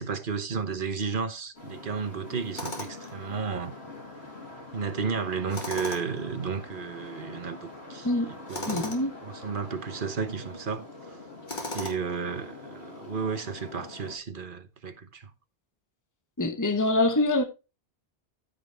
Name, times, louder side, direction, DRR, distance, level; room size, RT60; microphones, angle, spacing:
voice 1, 0.0-3.7 4.7-8.9 9.2-11.2 11.7-15.3, right 5 dB, 55° right, 1.2 m, -33 dB
sound 1, 1.5-14.2, left 2 dB, 80° left, 3.8 m, -45 dB
Tools, 2.6-3.1 5.5-6.2 8.5-9.1 11.5-12.2, left 2 dB, 45° left, 2.3 m, -36 dB
voice 2, 8.7-9.1 16.4-17.4, left 2 dB, 20° left, 1.1 m, -24 dB
13.5 x 5.8 x 3.4 m
omnidirectional pair, 1.1 m